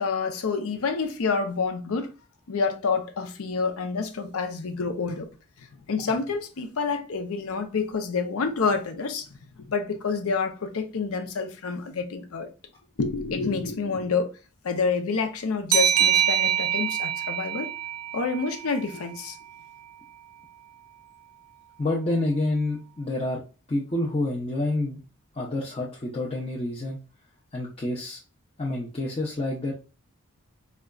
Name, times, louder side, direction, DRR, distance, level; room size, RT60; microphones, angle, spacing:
voice 1, 0.0-2.1 2.5-5.3 5.6-9.3 9.6-12.5 13.0-14.3 14.6-17.7 18.1-19.4, left 4 dB, 85° left, 0.6 m, -28 dB
sound 1, 15.7-19.0, right 10 dB, 90° right, 0.4 m, -25 dB
voice 2, 21.8-23.4 23.7-25.0 25.3-27.0 27.5-28.2 28.6-29.7, left 2 dB, 25° left, 0.5 m, -28 dB
4.9 x 2.2 x 2.3 m
head